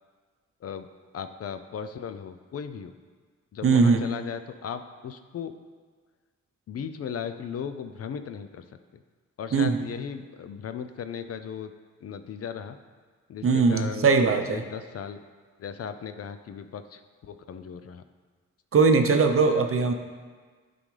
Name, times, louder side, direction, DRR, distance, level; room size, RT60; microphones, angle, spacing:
voice 1, 1.1-2.9 3.5-5.5 6.7-8.6 9.4-11.7 12.0-12.8 13.3-14.1 14.5-15.2 15.6-18.0, left 7 dB, 50° left, 9 dB, 0.5 m, -36 dB
voice 2, 3.6-4.0 9.5-9.8 13.4-14.6 18.7-19.9, right 4 dB, 45° right, 6 dB, 0.7 m, -20 dB
11.0 x 3.9 x 3.3 m, 1.5 s
cardioid pair, 70°, 31 cm